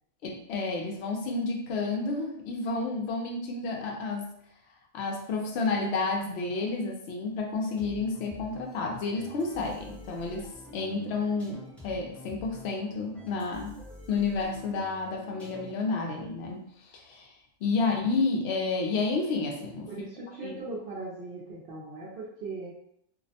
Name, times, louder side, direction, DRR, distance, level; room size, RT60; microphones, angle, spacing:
voice 1, 0.2-4.3 4.9-11.6 11.8-13.8 14.1-16.6 16.9-17.3 17.6-20.1 20.4-20.6, left 3 dB, 65° left, 0 dB, 0.7 m, -30 dB
sound 1, 7.8-15.9, equal, ahead, 0.3 m, -48 dB
voice 2, 19.9-22.8, right 3 dB, 60° right, -5 dB, 0.6 m, -39 dB
2.5 x 2.0 x 2.7 m, 0.74 s
omnidirectional pair, 1.5 m